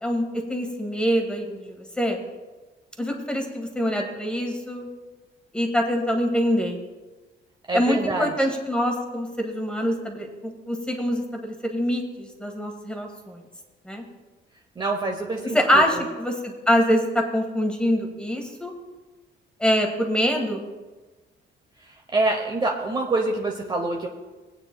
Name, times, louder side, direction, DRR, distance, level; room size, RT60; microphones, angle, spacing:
voice 1, 0.0-2.2 3.0-4.9 5.5-6.8 7.7-13.4 13.8-14.0 15.5-18.7 19.6-20.7, equal, 5° left, 2 dB, 1.5 m, -25 dB
voice 2, 7.7-8.3 14.8-16.0 22.1-24.1, right 2 dB, 25° right, 2 dB, 0.8 m, -26 dB
20.5 x 8.9 x 2.2 m, 1.2 s
cardioid pair, 150°, 20 cm